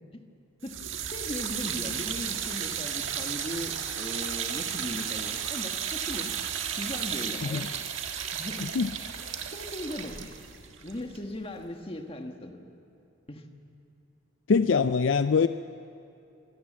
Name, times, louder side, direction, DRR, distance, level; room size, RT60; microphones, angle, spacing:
sound 1, 0.6-11.7, right 8 dB, 70° right, 1.6 m, -34 dB
voice 1, 1.1-6.3 6.8-7.7 8.3-8.7 9.5-10.3 10.8-12.6 13.3-13.4, left 1 dB, 25° left, 4 dB, 1.6 m, -38 dB
voice 2, 14.5-15.5, left 5 dB, 60° left, 11 dB, 0.4 m, -23 dB
25.0 x 17.5 x 7.5 m, 2.7 s
head